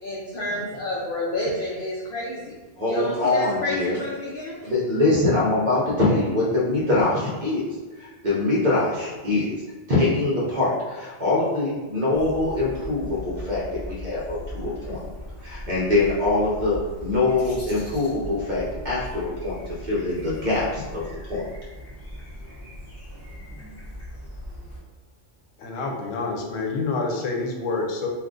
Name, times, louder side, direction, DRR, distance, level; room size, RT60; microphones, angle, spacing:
voice 1, 0.0-2.5 2.8-4.6, left 1 dB, 60° left, -4 dB, 0.6 m, -30 dB
voice 2, 2.8-4.0 4.6-7.6 8.0-9.5 9.9-15.0 15.4-21.4, left 2 dB, 45° right, -6 dB, 0.7 m, -23 dB
Neigbour-Amb, 12.1-24.8, left 1 dB, 25° left, 0.3 m, -38 dB
voice 3, 25.6-28.1, left 3 dB, 85° left, 1 dB, 1.0 m, -27 dB
2.5 x 2.4 x 3.6 m, 1.3 s
omnidirectional pair, 1.3 m